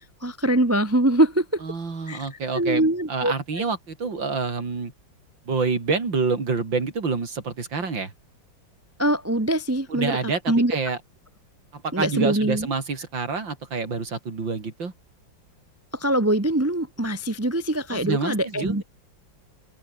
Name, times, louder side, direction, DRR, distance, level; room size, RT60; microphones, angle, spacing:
voice 1, 0.0-1.6 2.1-2.3 2.5-3.6 9.0-10.2 10.5-10.8 11.9-12.7 15.9-18.8, right 1 dB, 10° right, 1.0 m, -23 dB
voice 2, 1.6-4.9 5.5-8.1 9.9-11.0 11.7-14.9 17.9-18.8, right 4 dB, 70° right, 4.2 m, -27 dB
omnidirectional pair, 2.1 m